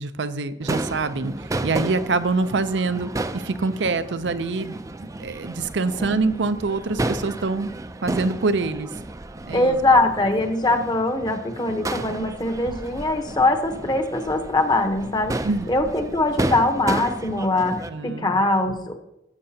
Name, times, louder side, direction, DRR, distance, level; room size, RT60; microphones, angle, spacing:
voice 1, 0.0-7.7 8.0-8.9 9.5-9.8 15.4-15.7 17.9-18.3, right 3 dB, 90° right, 12 dB, 0.6 m, -25 dB
Crowd / Fireworks, 0.6-17.9, right 2 dB, 20° right, 0.4 m, -32 dB
voice 2, 9.5-15.4 15.7-18.9, left 2 dB, 25° left, 5 dB, 1.0 m, -22 dB
14.5 x 7.6 x 2.8 m, 0.86 s
head